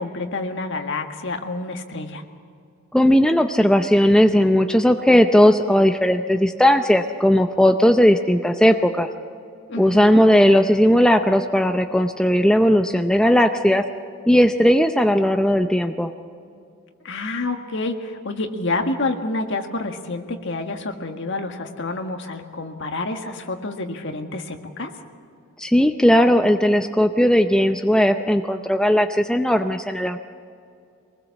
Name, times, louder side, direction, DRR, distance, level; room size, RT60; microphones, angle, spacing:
voice 1, 0.0-2.2 9.7-10.2 17.0-24.9, left 2 dB, 55° left, 4 dB, 1.8 m, -28 dB
voice 2, 2.9-9.1 9.8-13.8 14.3-16.1 25.6-30.2, equal, 5° left, 6 dB, 0.6 m, -17 dB
23.5 x 20.0 x 7.1 m, 2.4 s
head